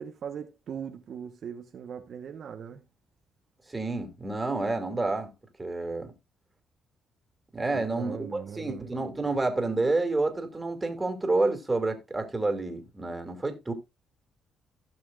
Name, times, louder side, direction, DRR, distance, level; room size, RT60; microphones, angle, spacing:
voice 1, 0.0-2.8 7.7-8.9, right 7 dB, 60° right, 1.1 m, -39 dB
voice 2, 3.7-5.3 5.6-6.1 7.5-13.7, right 2 dB, 20° right, 2.5 m, -29 dB
16.5 x 6.2 x 2.4 m
cardioid pair, 90°, 0 cm